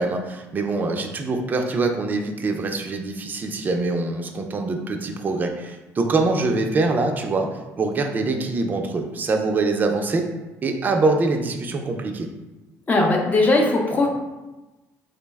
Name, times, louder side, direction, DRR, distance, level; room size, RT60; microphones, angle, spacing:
voice 1, 0.0-10.3 10.6-12.3, right 3 dB, 30° right, 4 dB, 0.4 m, -24 dB
voice 2, 12.9-14.1, left 2 dB, 30° left, 1 dB, 0.6 m, -19 dB
3.8 x 2.0 x 3.4 m, 1.1 s
cardioid pair, 100°, 6 cm